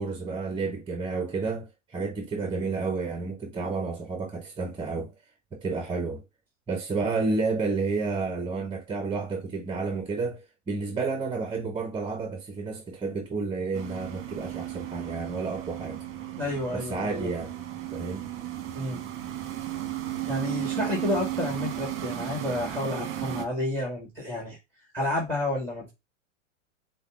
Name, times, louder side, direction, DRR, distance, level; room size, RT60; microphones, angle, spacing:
voice 1, 0.0-5.1 5.5-6.2 6.7-16.1 16.7-17.5 17.9-18.3, right 4 dB, 15° right, 0.8 m, -31 dB
sound 1, 13.7-23.4, right 13 dB, 35° right, 1.2 m, -34 dB
voice 2, 16.4-17.3 18.7-19.0 20.3-24.6 24.9-25.9, left 1 dB, 5° left, 1.8 m, -30 dB
5.3 x 2.3 x 3.6 m
hypercardioid pair, 110°, 38 cm